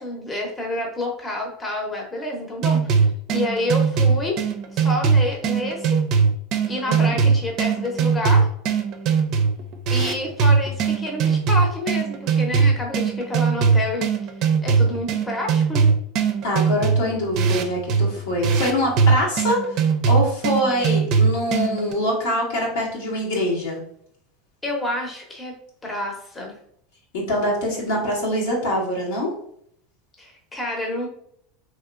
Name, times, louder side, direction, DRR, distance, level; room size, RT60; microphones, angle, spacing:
voice 1, 0.0-4.4 4.7-6.0 6.7-8.5 9.9-14.1 14.6-15.9 24.6-25.5 25.8-26.5 30.2-31.1, left 1 dB, 15° left, 0 dB, 0.8 m, -28 dB
sound 1, 2.6-21.9, right 5 dB, 55° right, 0.4 m, -20 dB
voice 2, 16.4-19.8 20.1-23.8 27.1-29.3, equal, 80° left, -2 dB, 1.2 m, -24 dB
3.0 x 2.9 x 2.4 m, 0.67 s
hypercardioid pair, 100°, 0 cm